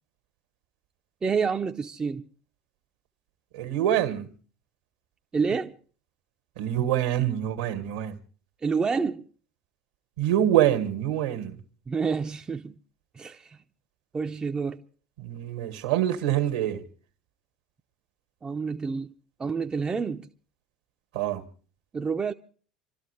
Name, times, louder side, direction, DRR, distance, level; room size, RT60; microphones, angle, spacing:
voice 1, 1.2-2.3 5.3-5.7 8.6-9.3 11.9-12.7 13.1-13.6 14.1-14.8 18.4-19.1 19.4-20.3 21.9-22.3, right 5 dB, 20° right, 0.6 m, -28 dB
voice 2, 3.5-4.3 6.6-8.2 10.2-11.6 15.2-16.9 21.1-21.5, right 11 dB, 70° right, 1.8 m, -25 dB
27.5 x 13.0 x 3.3 m
hypercardioid pair, 75°, 4 cm